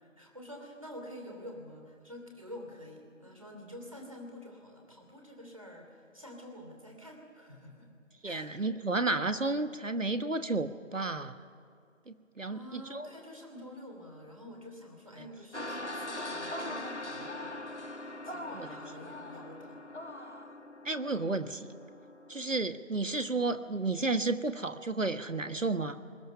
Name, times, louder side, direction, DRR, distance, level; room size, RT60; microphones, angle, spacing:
voice 1, 0.0-7.9 8.2-8.6 12.5-19.8, equal, 25° right, 1 dB, 3.0 m, -48 dB
voice 2, 8.2-11.4 12.1-13.1 18.5-18.7 20.8-21.7 22.3-26.0, right 3 dB, 75° right, 11 dB, 1.4 m, -32 dB
sound 1, 15.5-22.6, left 1 dB, 60° left, 1.7 m, -41 dB
29.5 x 20.5 x 5.6 m, 2.4 s
figure-of-eight pair, 175°, 38 cm